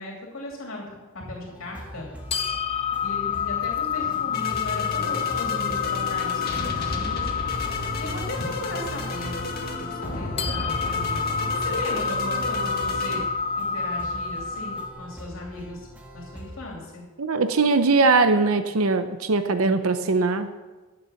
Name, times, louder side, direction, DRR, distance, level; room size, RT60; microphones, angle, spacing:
voice 1, 0.0-2.1 3.0-7.3 7.7-9.4 9.9-13.2 13.6-15.9 16.1-17.0, left 2 dB, 70° left, -1 dB, 2.9 m, -37 dB
sound 1, 1.4-16.6, equal, 5° right, 1.6 m, -43 dB
sound 2, 2.3-14.9, left 7 dB, 25° left, 0.8 m, -29 dB
sound 3, 3.9-13.3, left 2 dB, 45° left, 1.8 m, -32 dB
voice 2, 17.2-20.5, right 3 dB, 80° right, 9 dB, 0.7 m, -21 dB
13.0 x 7.2 x 7.1 m, 1.3 s
head